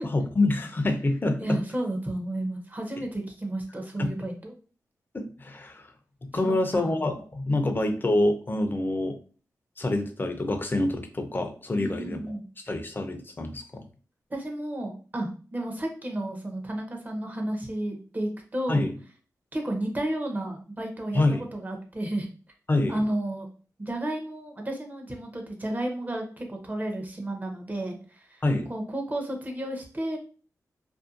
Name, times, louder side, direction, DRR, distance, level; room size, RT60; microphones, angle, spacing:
voice 1, 0.0-1.6 4.0-4.1 5.1-5.9 6.3-9.1 9.8-12.3 12.7-13.8 18.7-18.9 21.1-21.4 22.7-22.9 28.4-28.7, left 2 dB, 30° left, 5 dB, 0.5 m, -26 dB
voice 2, 1.4-4.6 6.3-7.0 7.5-7.7 11.7-12.4 14.3-18.9 19.5-22.3 22.9-23.5 23.8-28.4 28.7-30.2, right 1 dB, 25° right, 2 dB, 0.7 m, -32 dB
2.6 x 2.1 x 2.5 m, 0.38 s
cardioid pair, 60°, 7 cm